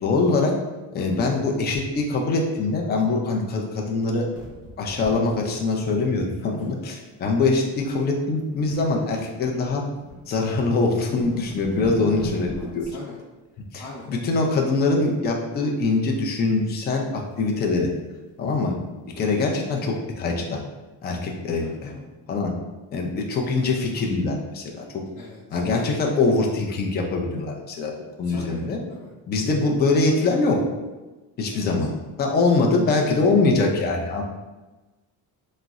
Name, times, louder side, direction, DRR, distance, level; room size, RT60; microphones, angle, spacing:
voice 1, 0.0-0.5 0.9-4.3 4.8-9.8 10.3-12.9 13.7-17.9 18.4-18.8 19.2-20.6 21.0-21.9 22.3-22.5 22.9-24.9 25.5-27.9 28.2-28.8 29.3-30.6 31.4-31.9 32.2-34.2, left 3 dB, 30° left, 0 dB, 0.4 m, -23 dB
sound 1, 4.3-6.7 7.0-7.2 7.7-8.0 8.3-10.2 10.7-10.8 11.0-12.9 14.8-15.3 15.7-17.1 17.6-17.7 18.0-18.1 18.5-18.6, right 1 dB, 10° right, 1.0 m, -41 dB
voice 2, 12.8-13.2 13.8-14.1 21.6-22.0 25.2-25.6 28.2-28.6 28.9-29.1 31.5-31.7, left 3 dB, 90° left, -5 dB, 0.7 m, -41 dB
3.7 x 2.0 x 2.3 m, 1.2 s
cardioid pair, 140°, 37 cm